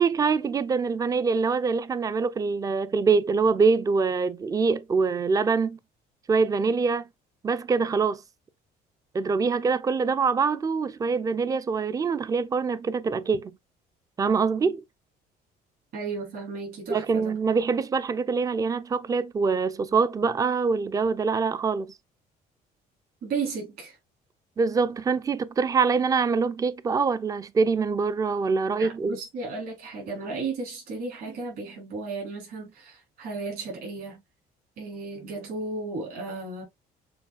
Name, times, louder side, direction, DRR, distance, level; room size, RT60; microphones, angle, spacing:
voice 1, 0.0-5.8 6.3-7.1 7.4-8.2 9.1-13.5 14.2-14.8 16.9-21.9 24.6-29.2, right 5 dB, 20° right, 0.4 m, -24 dB
voice 2, 15.9-17.3 23.2-24.0 28.8-34.2 34.8-36.6, right 4 dB, 65° right, 3.5 m, -34 dB
7.0 x 2.7 x 2.4 m
cardioid pair, 110°, 17 cm